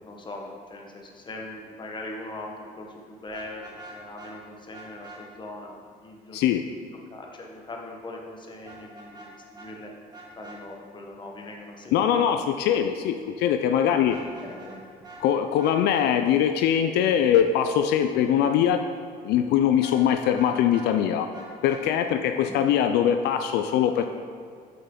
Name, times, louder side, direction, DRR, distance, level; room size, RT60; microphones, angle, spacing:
voice 1, 0.0-6.4 7.1-9.9 10.3-12.2 13.8-14.0 14.4-14.8 22.0-22.6, left 2 dB, 25° left, 0 dB, 1.1 m, -41 dB
Vehicle horn car horn honking, 3.3-4.3 4.7-5.2 8.6-9.3 9.5-9.7 10.1-10.6 14.0-14.8 15.0-15.2 15.6-16.1 19.8-20.9 21.3-21.8, right 3 dB, 25° right, 1.9 m, -45 dB
voice 2, 6.3-6.6 11.9-14.2 15.2-18.8 19.2-21.3 21.6-24.0, left 9 dB, 80° left, 7 dB, 0.4 m, -22 dB
7.6 x 5.7 x 3.8 m, 2.1 s
cardioid pair, 110°, 17 cm